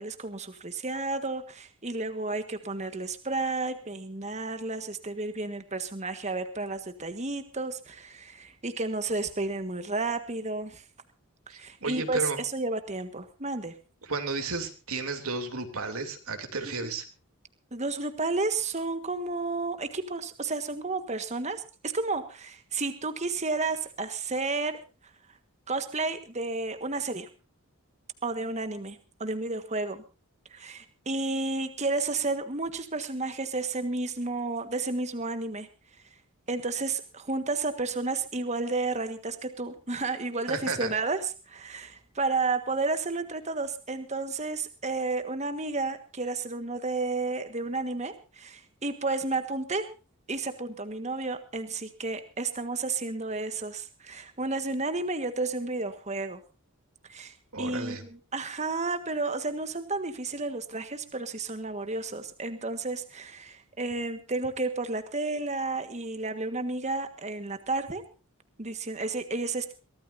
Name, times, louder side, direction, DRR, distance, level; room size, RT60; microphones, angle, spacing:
voice 1, 0.0-10.8 11.5-13.7 16.6-16.9 17.7-24.8 25.7-27.3 28.2-30.0 30.5-35.7 36.5-49.9 50.3-56.4 57.1-68.0 68.6-69.7, right 3 dB, 30° right, 9 dB, 1.5 m, -32 dB
voice 2, 11.5-12.4 14.0-17.0 40.5-40.9 57.5-58.0, right 3 dB, 70° right, 5 dB, 3.0 m, -33 dB
23.5 x 16.5 x 2.7 m, 0.32 s
head